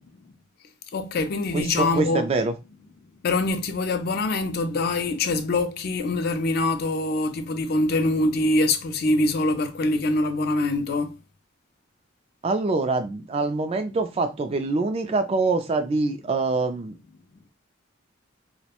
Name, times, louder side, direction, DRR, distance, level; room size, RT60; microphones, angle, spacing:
voice 1, 0.9-2.3 3.2-11.2, left 2 dB, 50° left, 0.4 m, -24 dB
voice 2, 1.5-2.5 12.4-16.9, right 3 dB, 30° right, 0.3 m, -25 dB
2.3 x 2.1 x 2.8 m
head